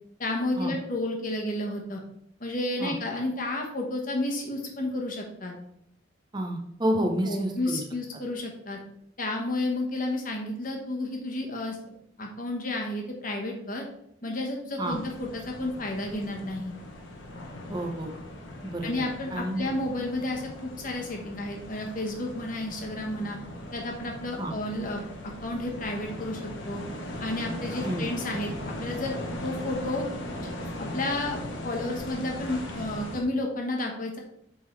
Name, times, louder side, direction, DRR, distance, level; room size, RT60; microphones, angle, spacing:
voice 1, 0.2-2.0 2.4-5.5 7.2-8.8 9.2-11.8 12.2-13.8 14.2-16.7 18.8-23.4 23.7-26.8 27.2-28.5 28.8-29.2 29.4-30.1 30.4-34.2, left 1 dB, 45° left, 1 dB, 1.2 m, -31 dB
voice 2, 6.3-7.8 14.8-15.0 17.7-18.1 18.6-19.1 19.3-19.7 24.4-24.6 27.8-28.1, right 1 dB, 20° right, 2 dB, 0.8 m, -29 dB
sound 1, 14.8-33.2, left 1 dB, 75° left, 1.0 m, -39 dB
7.7 x 3.9 x 3.3 m, 0.74 s
head